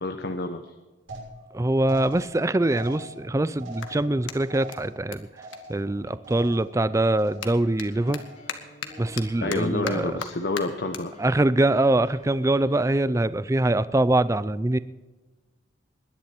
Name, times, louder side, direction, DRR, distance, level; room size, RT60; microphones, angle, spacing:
voice 1, 0.0-0.7 9.4-11.1, left 2 dB, 55° left, 7 dB, 0.9 m, -29 dB
sound 1, 1.1-6.9 7.1-7.7 8.0-8.6 8.9-9.4 9.8-10.3, right 1 dB, 85° right, 6.3 m, -44 dB
voice 2, 1.5-5.3 5.7-8.2 9.0-10.2 11.2-14.8, right 2 dB, 15° right, 15 dB, 0.4 m, -23 dB
Clapping, 3.7-6.5 6.8-13.4, left 6 dB, 85° left, 1.6 m, -41 dB
sound 2, 7.4-12.9, left 1 dB, 35° left, 3.1 m, -49 dB
20.5 x 10.5 x 4.5 m, 1.2 s
head